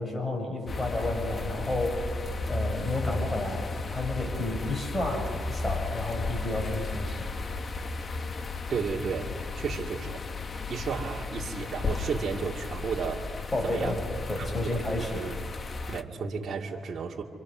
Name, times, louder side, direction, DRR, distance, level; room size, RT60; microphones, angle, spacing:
voice 1, 0.0-2.2 2.5-7.2 13.5-14.0 14.3-15.2, left 2 dB, 20° left, 3 dB, 6.0 m, -31 dB
sound 1, 0.7-16.0, left 3 dB, 35° left, 1.2 m, -34 dB
voice 2, 8.7-9.3 9.6-10.2 10.7-13.2 13.6-13.9 14.4-15.4 15.9-17.2, right 6 dB, 50° right, -2 dB, 2.4 m, -33 dB
28.0 x 26.5 x 6.2 m, 2.1 s
cardioid pair, 90°, 0 cm